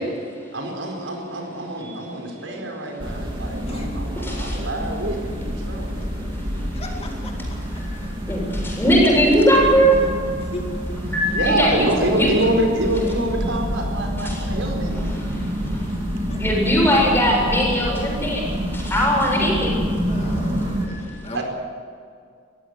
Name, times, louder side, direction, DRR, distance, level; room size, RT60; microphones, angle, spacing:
voice 1, 0.5-5.9 11.3-15.1 20.2-20.8 21.3-21.4, right 1 dB, 85° right, 2 dB, 4.7 m, -26 dB
sound 1, 3.0-20.9, equal, 25° right, 3.4 m, -27 dB
voice 2, 4.2-4.5 8.3-10.0 11.1-11.8 12.1-12.3 14.2-14.3 16.4-18.4 18.7-19.7, equal, 10° left, -2 dB, 7.6 m, -19 dB
voice 3, 6.7-7.3 10.5-10.6 16.3-16.4 20.1-21.4, left 1 dB, 30° left, 1 dB, 2.4 m, -36 dB
22.0 x 15.5 x 9.2 m, 2.2 s
head